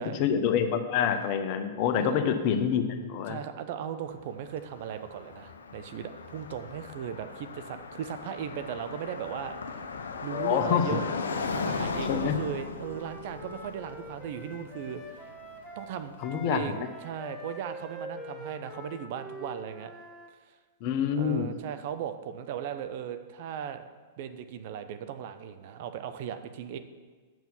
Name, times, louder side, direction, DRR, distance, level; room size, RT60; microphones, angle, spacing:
voice 1, 0.0-3.4 10.3-11.0 12.0-12.4 16.2-16.9 20.8-21.5, left 8 dB, 45° left, 7 dB, 0.9 m, -27 dB
voice 2, 3.3-9.8 10.2-11.0 11.3-15.3 15.8-19.9 21.1-23.8 24.2-26.8, right 9 dB, 50° right, 9 dB, 0.6 m, -37 dB
Car passing by, 4.2-16.2, left 4 dB, 70° left, 0.6 m, -37 dB
Wind instrument woodwind instrument, 12.3-20.3, equal, ahead, 1.0 m, -45 dB
7.1 x 6.0 x 7.1 m, 1.5 s
figure-of-eight pair, 100°, 0 cm